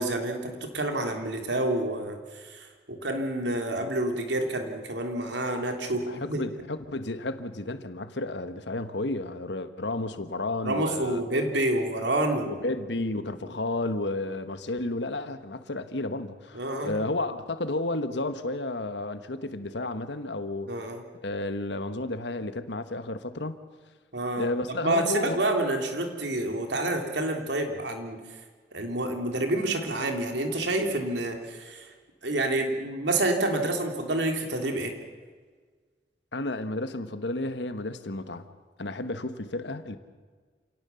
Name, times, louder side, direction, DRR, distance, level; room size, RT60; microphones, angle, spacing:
voice 1, 0.0-6.5 10.6-12.5 16.5-17.0 20.7-21.0 24.1-28.2 28.7-31.9 32.2-34.9, right 1 dB, 80° right, 4 dB, 3.3 m, -28 dB
voice 2, 6.1-11.2 12.5-20.7 21.2-23.5 24.4-25.4 36.3-38.5 38.8-40.0, left 2 dB, 80° left, 10 dB, 1.4 m, -32 dB
28.0 x 18.0 x 7.1 m, 1.5 s
head